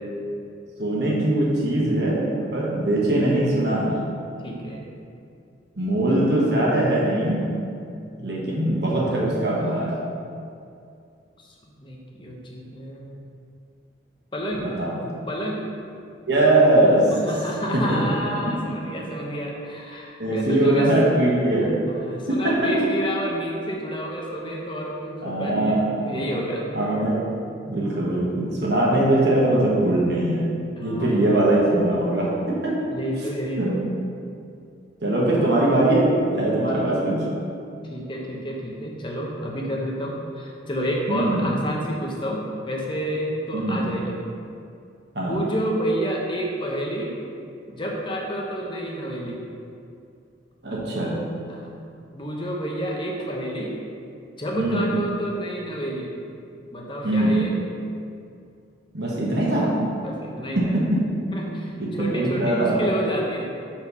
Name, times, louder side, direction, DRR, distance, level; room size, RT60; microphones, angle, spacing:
voice 1, 0.8-4.1 5.8-7.6 8.2-9.9 14.6-15.1 16.3-17.1 17.7-19.0 20.2-21.8 22.3-22.7 25.2-26.2 26.7-27.2 27.7-32.8 33.6-33.8 35.0-37.3 41.1-41.5 43.5-43.9 45.1-45.5 50.6-51.3 54.6-54.8 57.0-57.5 58.9-59.8 60.5-61.0 61.7-62.9, right 1 dB, 60° right, -5 dB, 1.4 m, -21 dB
voice 2, 4.4-4.8 11.6-13.2 14.3-14.7 15.3-15.6 17.2-20.9 21.9-26.6 30.8-31.1 32.9-33.8 36.7-36.8 37.9-44.1 45.2-47.1 47.7-49.4 51.5-51.7 52.1-53.7 54.4-56.1 56.7-57.5 60.0-60.7 61.3-63.4, equal, 25° left, -1 dB, 0.9 m, -29 dB
6.6 x 4.4 x 5.5 m, 2.4 s
head